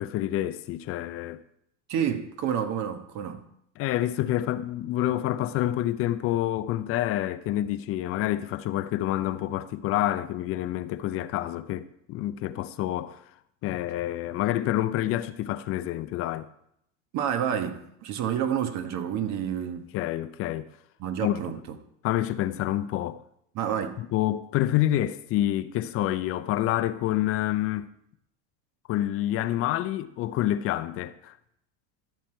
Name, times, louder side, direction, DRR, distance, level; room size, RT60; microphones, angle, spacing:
voice 1, 0.0-1.4 3.8-13.2 13.6-16.5 19.9-20.7 21.2-21.4 22.0-23.2 24.0-27.9 28.9-31.3, left 13 dB, 40° left, 0.5 m, -28 dB
voice 2, 1.9-3.4 17.1-19.9 21.0-21.6 23.5-23.9, right 9 dB, 45° right, 1.3 m, -29 dB
13.5 x 6.2 x 4.5 m
supercardioid pair, 110°, 38 cm